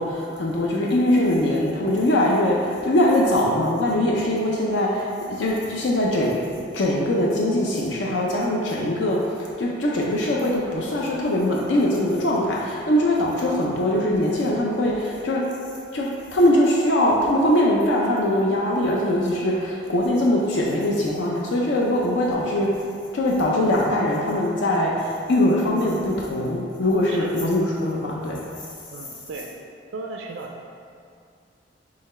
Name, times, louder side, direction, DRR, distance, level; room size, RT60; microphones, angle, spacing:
voice 1, 0.0-6.4 6.7-15.4 15.9-28.4, left 1 dB, 65° left, -3 dB, 0.5 m, -22 dB
voice 2, 28.9-29.5 29.9-30.6, right 3 dB, 80° right, 1 dB, 0.4 m, -35 dB
3.9 x 3.1 x 4.2 m, 2.3 s
head